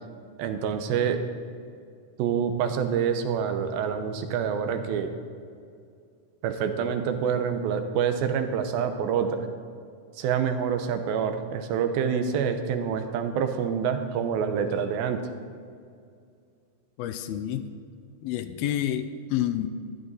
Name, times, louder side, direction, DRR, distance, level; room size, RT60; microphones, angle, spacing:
voice 1, 0.4-1.2 2.2-5.1 6.4-9.4 10.2-15.2, right 7 dB, 80° right, 7 dB, 2.5 m, -27 dB
voice 2, 17.0-17.7 18.2-19.7, left 11 dB, 85° left, 9 dB, 2.5 m, -29 dB
14.0 x 10.5 x 4.0 m, 2.3 s
omnidirectional pair, 4.3 m